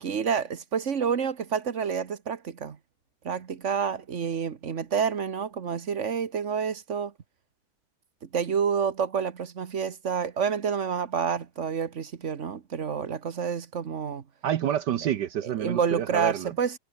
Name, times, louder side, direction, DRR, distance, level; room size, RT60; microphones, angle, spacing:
voice 1, 0.0-2.8 3.2-7.1 8.3-14.2 15.6-16.7, right 6 dB, 40° right, 1.3 m, -28 dB
voice 2, 14.4-16.5, right 10 dB, 65° right, 1.2 m, -28 dB
omnidirectional pair, 2.4 m